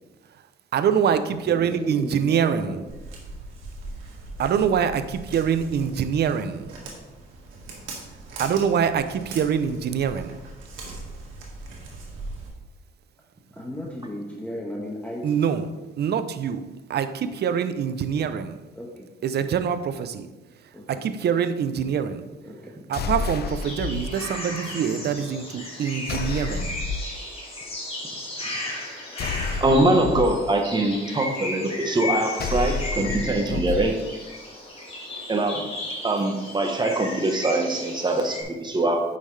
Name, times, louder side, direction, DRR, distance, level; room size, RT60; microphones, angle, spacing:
voice 1, 0.7-2.8 4.4-6.7 8.4-10.4 15.2-15.7 16.0-18.6 19.2-20.3 20.9-22.2 22.9-26.8 33.5-33.9, right 7 dB, 55° right, 0.6 m, -25 dB
voice 2, 1.7-2.8 13.5-15.6 18.7-19.1 20.7-21.1 22.4-22.8, left 1 dB, 5° left, 1.2 m, -35 dB
Walk footsteps, 2.9-12.5, right 2 dB, 85° right, 1.8 m, -40 dB
sound 1, 22.9-24.0 26.1-27.1 29.2-30.3 32.4-33.8, left 4 dB, 55° left, 0.6 m, -29 dB
sound 2, 23.4-38.4, left 2 dB, 30° left, 2.5 m, -35 dB
voice 3, 29.6-33.9 35.3-35.7 36.0-39.0, right 2 dB, 20° right, 1.1 m, -23 dB
8.5 x 5.7 x 3.3 m
cardioid pair, 90°, 20 cm